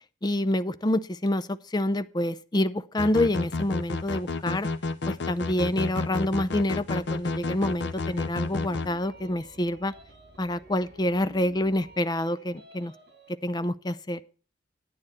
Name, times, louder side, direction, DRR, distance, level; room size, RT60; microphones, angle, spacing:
voice 1, 0.2-4.7 5.1-9.9 10.4-12.9 13.3-14.2, left 1 dB, 25° left, 12 dB, 0.5 m, -27 dB
sound 1, 3.0-8.9, left 3 dB, 65° left, 0.7 m, -31 dB
sound 2, 6.2-12.0, right 2 dB, 20° right, 5.5 m, -56 dB
sound 3, 7.9-13.3, equal, 55° right, 3.4 m, -52 dB
9.8 x 9.4 x 4.2 m, 0.39 s
head